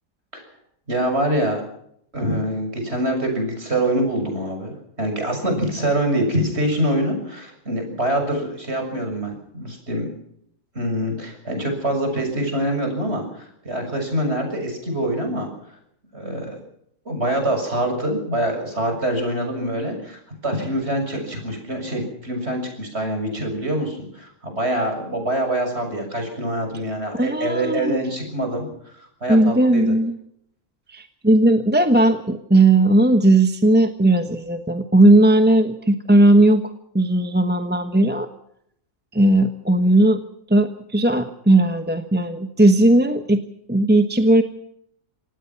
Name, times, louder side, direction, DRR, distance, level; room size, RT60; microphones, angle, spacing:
voice 1, 0.9-1.6 2.1-10.1 10.8-15.5 16.1-16.6 17.1-28.7 29.2-29.8, right 1 dB, 50° right, 4 dB, 7.3 m, -25 dB
voice 2, 27.1-28.0 29.3-30.2 30.9-36.6 36.9-38.3 39.1-40.2 40.5-43.4 43.7-44.4, right 1 dB, 10° right, 7 dB, 1.1 m, -17 dB
25.5 x 18.5 x 6.0 m, 0.71 s
omnidirectional pair, 1.4 m